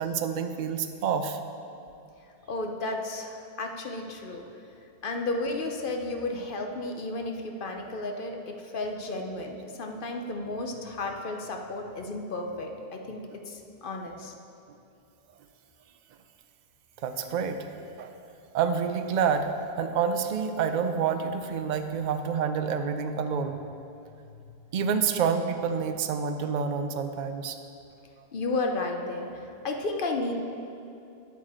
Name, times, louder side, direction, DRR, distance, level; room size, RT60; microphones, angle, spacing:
voice 1, 0.0-1.4 17.0-17.6 18.0-18.1 18.5-19.5 19.8-23.6 24.7-27.6, right 6 dB, 55° right, 7 dB, 0.6 m, -28 dB
voice 2, 2.5-4.4 5.0-14.3 24.2-24.4 28.3-30.3, left 2 dB, 60° left, 3 dB, 0.8 m, -33 dB
9.2 x 7.4 x 4.3 m, 2.6 s
omnidirectional pair, 1.1 m